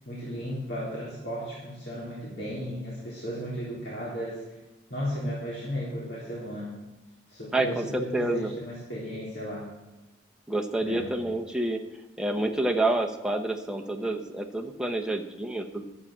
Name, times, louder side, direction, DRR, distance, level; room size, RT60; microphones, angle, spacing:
voice 1, 0.1-4.6 4.9-6.7 7.3-9.7 10.8-11.1, equal, 65° left, -7 dB, 3.6 m, -35 dB
voice 2, 7.5-8.5 10.5-11.8 12.2-15.8, right 1 dB, 5° right, 2 dB, 1.0 m, -28 dB
12.0 x 8.6 x 7.4 m, 1.0 s
head